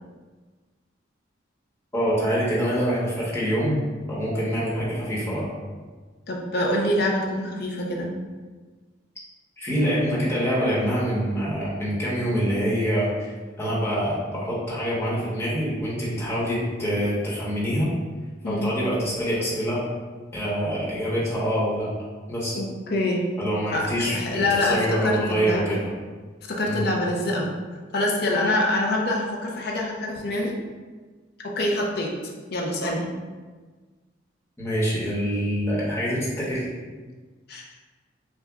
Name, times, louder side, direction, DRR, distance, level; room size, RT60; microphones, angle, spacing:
voice 1, 1.9-3.8 4.1-5.5 9.6-13.3 13.6-17.9 18.4-19.8 20.3-21.9 22.3-22.5 23.4-24.2 24.6-25.9 26.6-26.8 34.6-36.7, equal, 15° left, -8 dB, 1.1 m, -25 dB
voice 2, 6.3-8.1 18.4-18.7 22.5-23.2 23.7-25.6 26.5-27.5 27.9-30.5 31.4-32.1 32.5-33.1 37.5-37.6, left 1 dB, 55° left, -1 dB, 0.6 m, -25 dB
6.8 x 2.3 x 2.4 m, 1.4 s
head